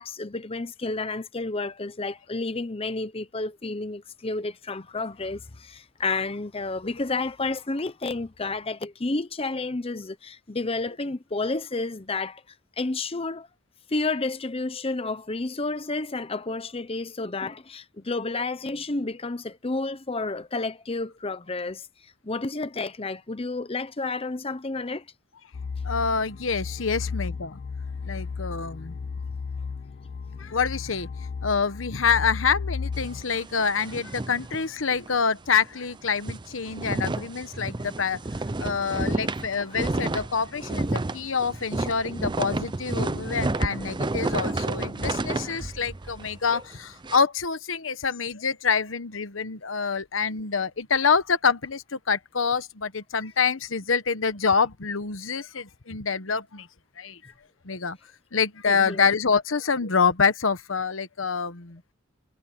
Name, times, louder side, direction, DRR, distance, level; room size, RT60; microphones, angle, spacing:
voice 1, 0.0-12.4 12.8-13.5 13.9-21.9 22.2-25.0 30.4-30.5 39.5-39.8 40.9-41.1 58.7-59.1, left 3 dB, 30° left, 0.8 m, -31 dB
sound 1, 25.5-33.2, left 5 dB, 45° left, 0.4 m, -34 dB
voice 2, 25.8-27.6 28.0-29.0 30.4-31.1 31.4-38.2 38.6-56.7 57.0-57.2 57.6-58.0 58.3-61.8, left 5 dB, 85° left, 1.1 m, -26 dB
sound 2, 32.9-35.2 35.5-35.7 36.0-47.2, right 2 dB, 25° right, 0.6 m, -31 dB
head